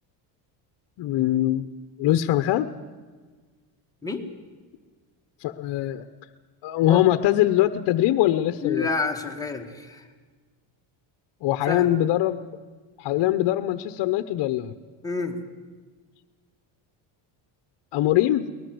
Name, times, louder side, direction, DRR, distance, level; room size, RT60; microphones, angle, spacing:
voice 1, 1.0-1.7 2.0-2.7 5.4-6.1 6.6-8.9 11.4-12.4 13.0-14.7 17.9-18.5, left 13 dB, 55° left, 10 dB, 1.0 m, -22 dB
voice 2, 8.6-10.0 11.7-11.9 15.0-15.4, left 4 dB, 5° left, 1 dB, 1.8 m, -28 dB
22.5 x 20.0 x 7.9 m, 1.4 s
cardioid pair, 145°, 49 cm